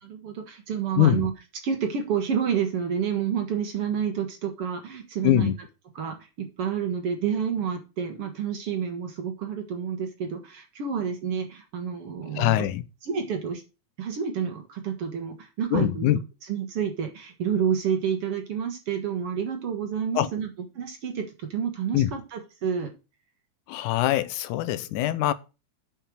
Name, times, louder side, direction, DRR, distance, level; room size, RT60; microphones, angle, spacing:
voice 1, 0.0-1.3 1.6-5.5 6.0-12.7 13.0-13.6 14.0-16.1 16.5-20.5 20.8-22.9, right 7 dB, 55° right, 2.0 m, -29 dB
voice 2, 1.0-1.3 5.2-5.5 12.4-12.8 15.7-16.2 20.2-20.3 21.9-22.1 23.7-25.3, left 13 dB, 85° left, 2.2 m, -23 dB
8.5 x 5.5 x 6.3 m
omnidirectional pair, 3.5 m